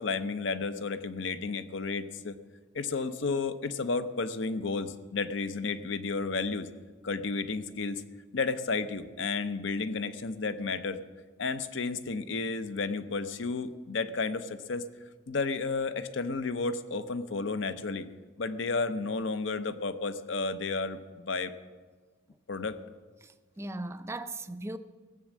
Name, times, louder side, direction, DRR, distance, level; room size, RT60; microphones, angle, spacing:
voice 1, 0.0-2.4 2.7-6.7 7.0-8.0 8.3-11.0 11.4-14.9 15.3-18.1 18.4-21.5 22.5-22.8, left 4 dB, 60° left, 0.7 m, -32 dB
voice 2, 23.2-24.8, right 2 dB, 15° right, 0.4 m, -38 dB
16.5 x 7.4 x 7.2 m
head